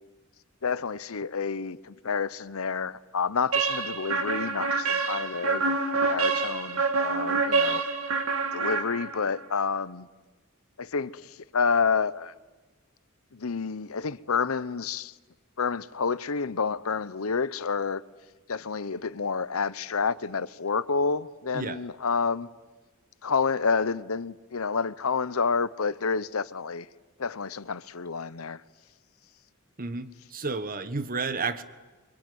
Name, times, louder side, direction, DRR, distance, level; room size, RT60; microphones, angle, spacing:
voice 1, 0.6-5.8 6.1-7.8 8.5-10.1 10.8-12.3 13.3-15.1 15.6-18.0 18.5-22.5 23.2-26.9 27.2-28.6, left 5 dB, 90° left, 0.8 m, -29 dB
sound 1, 3.5-9.4, right 4 dB, 85° right, 2.5 m, -27 dB
voice 2, 29.8-31.6, right 4 dB, 45° right, 1.3 m, -31 dB
25.5 x 23.5 x 9.5 m
head